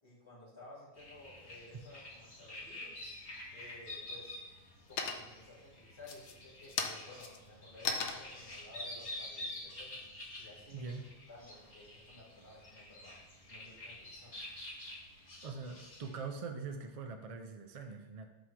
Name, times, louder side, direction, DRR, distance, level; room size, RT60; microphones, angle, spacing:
voice 1, 0.0-3.0 3.5-4.4 4.9-10.0 10.4-10.8 11.3-13.2 13.5-14.4, left 2 dB, 25° left, -7 dB, 2.6 m, -55 dB
sound 1, 1.0-16.2, left 1 dB, 55° left, 1.9 m, -48 dB
sound 2, 3.3-3.9 4.3-4.7 5.0-5.5 6.0-10.4, left 5 dB, 80° left, 1.0 m, -39 dB
voice 2, 10.7-11.1 15.4-18.3, right 4 dB, 45° right, 5 dB, 0.4 m, -43 dB
7.8 x 3.2 x 5.9 m, 1.1 s
omnidirectional pair, 1.2 m